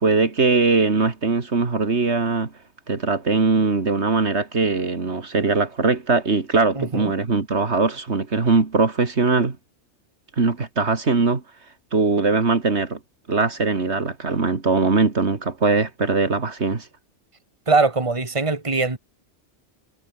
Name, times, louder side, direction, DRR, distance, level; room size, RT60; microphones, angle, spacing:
voice 1, 0.0-2.5 2.9-9.6 10.4-11.4 11.9-13.0 13.3-16.9, right 4 dB, 70° right, 2.5 m, -21 dB
voice 2, 6.8-7.1 17.7-19.0, right 3 dB, 25° right, 2.3 m, -21 dB
omnidirectional pair, 1.2 m